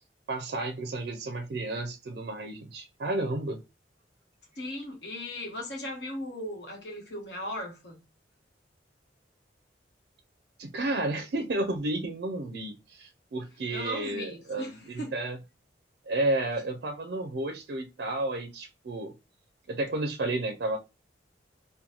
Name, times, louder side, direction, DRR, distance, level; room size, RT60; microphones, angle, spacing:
voice 1, 0.3-3.6 10.6-15.4 16.1-19.1 19.7-20.8, right 2 dB, 60° right, 0.4 m, -32 dB
voice 2, 4.6-8.0 13.7-15.1, left 1 dB, 65° left, 1.1 m, -37 dB
3.7 x 2.1 x 2.8 m
head